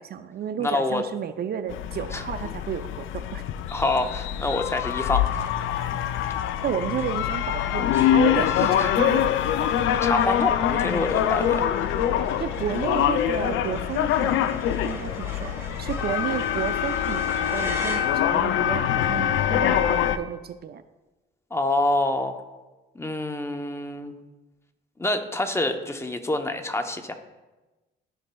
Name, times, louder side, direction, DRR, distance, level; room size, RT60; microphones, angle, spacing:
voice 1, 0.0-3.4 6.6-9.3 12.4-20.8, right 8 dB, 55° right, 11 dB, 0.5 m, -32 dB
voice 2, 0.6-1.0 2.1-2.2 3.7-5.3 8.6-8.9 10.0-11.7 21.5-22.4 22.9-24.1 25.0-27.1, left 2 dB, 15° left, 6 dB, 0.7 m, -26 dB
sound 1, 1.7-20.2, left 10 dB, 85° left, 0.4 m, -24 dB
sound 2, 4.1-4.6 4.9-5.0 5.3-18.6, right 1 dB, 15° right, 1.7 m, -42 dB
13.5 x 5.3 x 2.3 m, 1.1 s
cardioid pair, 90°, 20 cm